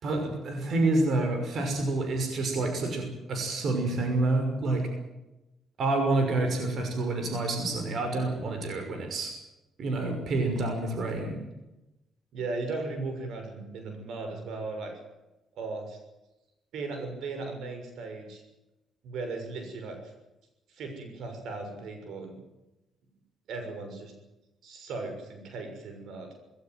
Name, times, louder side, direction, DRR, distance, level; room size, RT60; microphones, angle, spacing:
voice 1, 0.0-4.9 5.8-9.3 9.8-11.4, right 2 dB, 60° right, 4 dB, 5.9 m, -28 dB
voice 2, 12.3-14.9 15.6-16.0 16.7-18.4 19.0-20.0 20.7-22.4 23.5-24.1 24.6-26.3, right 3 dB, 75° right, 5 dB, 6.5 m, -37 dB
20.5 x 18.0 x 9.4 m, 0.97 s
cardioid pair, 90°, 0 cm